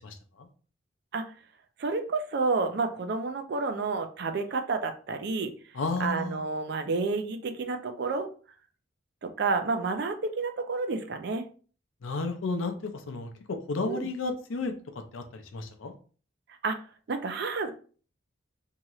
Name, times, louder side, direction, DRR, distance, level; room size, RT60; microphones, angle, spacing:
voice 1, 0.0-0.5 5.7-6.4 12.0-14.7 15.1-15.9, left 3 dB, 80° left, 6 dB, 0.5 m, -33 dB
voice 2, 1.8-5.5 6.0-8.3 9.2-11.5 13.9-14.1 16.6-16.8 17.1-17.7, right 4 dB, 55° right, 7 dB, 0.4 m, -30 dB
3.0 x 2.7 x 2.4 m, 0.40 s
head